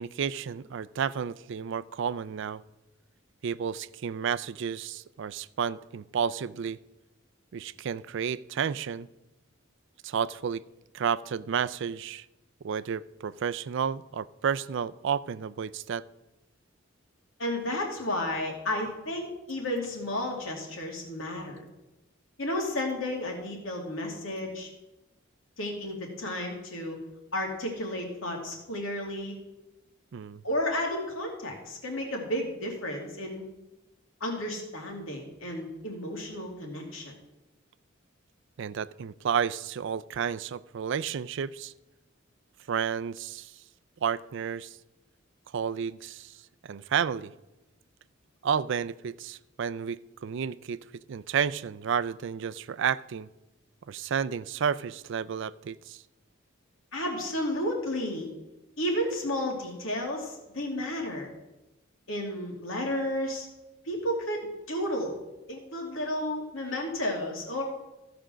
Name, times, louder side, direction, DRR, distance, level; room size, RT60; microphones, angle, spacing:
voice 1, 0.0-2.6 3.4-6.8 7.5-9.1 10.0-10.6 10.9-12.3 12.6-16.0 30.1-30.4 38.6-41.7 42.7-43.6 44.0-44.8 45.5-46.4 46.6-47.3 48.4-53.3 53.9-56.0, right 7 dB, 60° right, 17 dB, 0.4 m, -31 dB
voice 2, 17.4-21.6 22.4-24.7 25.6-27.0 27.3-29.4 30.4-33.5 34.2-37.1 56.9-58.3 58.8-61.3 62.1-63.5 63.8-65.2 65.5-67.6, left 1 dB, 80° left, 1 dB, 2.5 m, -32 dB
15.0 x 5.1 x 6.2 m, 0.98 s
head